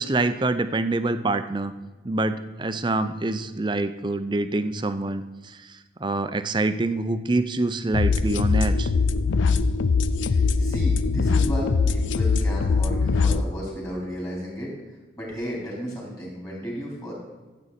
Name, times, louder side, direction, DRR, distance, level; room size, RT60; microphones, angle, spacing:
voice 1, 0.0-1.7 2.0-8.9, right 2 dB, 25° right, 10 dB, 0.6 m, -26 dB
sound 1, 7.9-13.4, left 4 dB, 85° left, 0.5 m, -22 dB
voice 2, 10.2-14.7 15.2-17.1, equal, 20° left, -4 dB, 4.2 m, -33 dB
14.0 x 8.3 x 4.2 m, 1.3 s
head